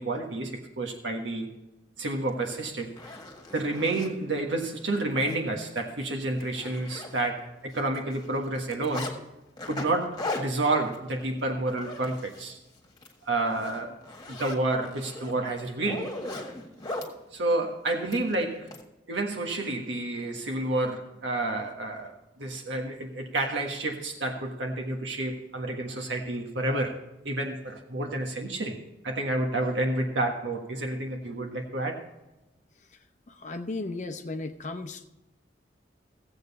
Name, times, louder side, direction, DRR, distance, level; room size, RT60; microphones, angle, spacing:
voice 1, 0.0-1.5 2.0-2.9 3.5-9.1 9.7-12.6 13.2-14.0 14.3-16.1 17.3-18.7 19.1-27.0 27.2-28.8 29.0-32.0, right 2 dB, 85° right, 2 dB, 1.5 m, -30 dB
Zipper (clothing), 2.3-2.4 2.8-4.1 4.7-4.9 5.2-5.4 5.7-5.8 6.2-7.5 7.7-9.1 9.6-12.5 12.9-13.1 13.5-17.1 18.1-18.8, left 2 dB, 20° left, 1.7 m, -38 dB
voice 2, 33.3-35.1, left 2 dB, 40° left, 7 dB, 0.7 m, -35 dB
15.5 x 7.8 x 4.1 m, 0.99 s
head